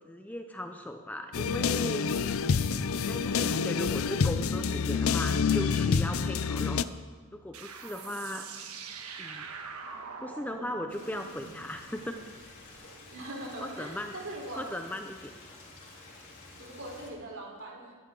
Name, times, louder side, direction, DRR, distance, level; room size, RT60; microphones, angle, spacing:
voice 1, 0.0-2.1 2.9-6.9 7.3-8.5 9.2-9.5 10.2-12.2 13.6-14.1 14.6-15.3, left 1 dB, 5° left, 5 dB, 0.6 m, -37 dB
sound 1, 1.3-6.8, left 5 dB, 70° left, 0.5 m, -27 dB
sound 2, 7.5-12.8, right 5 dB, 90° right, 1.3 m, -44 dB
Stream, 10.9-17.1, left 2 dB, 50° left, 4.5 m, -50 dB
voice 2, 13.1-14.7 16.6-17.9, right 1 dB, 55° right, -2 dB, 4.1 m, -41 dB
21.0 x 12.0 x 3.9 m, 1.5 s
head